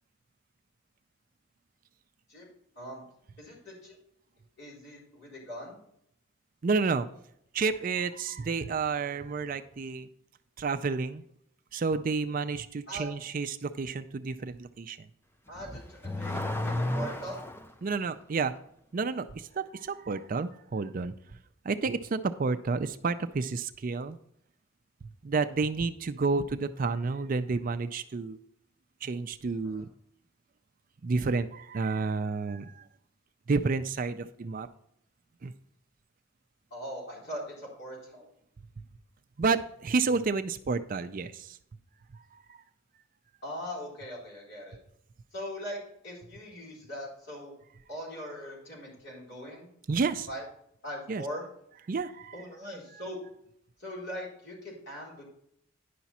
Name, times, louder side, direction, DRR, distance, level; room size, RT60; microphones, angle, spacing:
voice 1, 3.4-4.0 4.6-5.8 12.9-13.1 15.5-17.4 29.6-29.8 36.7-38.3 43.4-44.8 45.3-47.5 47.9-49.7 50.3-50.4 50.8-51.5 52.3-53.2 53.8-55.2, equal, 55° left, -5 dB, 4.0 m, -41 dB
voice 2, 6.6-7.1 7.5-10.1 10.6-11.2 11.7-15.1 17.8-18.5 18.9-21.1 21.6-24.2 25.0-28.4 29.0-29.9 31.0-32.8 33.5-34.7 35.4-35.5 38.8-38.9 39.4-41.6 42.1-42.6 49.9-50.3 51.1-51.2 51.9-52.4, right 4 dB, 40° right, 11 dB, 0.4 m, -30 dB
Car / Accelerating revving vroom, 15.5-17.7, left 1 dB, 10° left, 0.5 m, -32 dB
10.0 x 6.0 x 4.1 m, 0.71 s
head